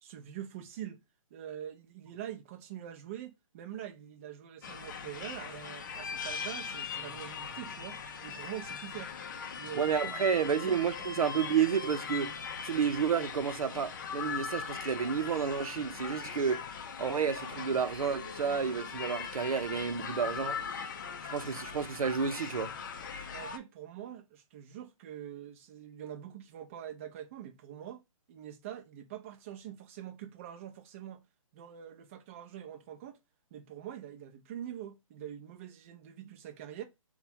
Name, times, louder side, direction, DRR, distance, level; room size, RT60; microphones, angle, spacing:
voice 1, 0.0-1.0 1.3-9.1 9.6-10.8 23.3-28.0 28.3-31.2 31.5-33.2 33.5-36.8, right 11 dB, 25° right, 0.6 m, -44 dB
sound 1, 4.6-23.6, left 6 dB, 35° left, 0.5 m, -40 dB
voice 2, 9.7-12.3 12.6-16.7 17.0-20.6 21.3-22.7, right 7 dB, 85° right, 0.6 m, -30 dB
3.4 x 2.3 x 4.2 m
hypercardioid pair, 165°, 18 cm